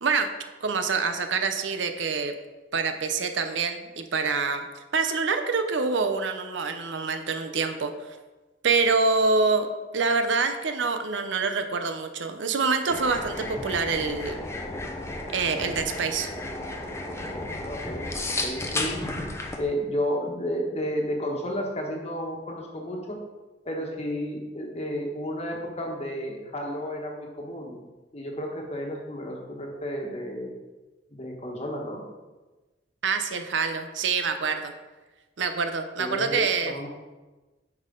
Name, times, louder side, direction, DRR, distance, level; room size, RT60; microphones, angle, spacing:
voice 1, 0.0-0.3 0.6-2.3 2.7-4.7 4.9-7.9 8.6-14.4 15.3-16.3 33.0-34.7 35.4-36.7, right 4 dB, 70° right, 7 dB, 0.6 m, -26 dB
sound 1, 12.9-19.6, left 2 dB, 15° left, 0.7 m, -33 dB
voice 2, 17.6-19.0 19.6-23.2 23.6-27.8 28.1-30.5 31.1-32.0 36.0-36.9, equal, 35° left, 0 dB, 1.4 m, -32 dB
9.2 x 5.5 x 3.8 m, 1.2 s
head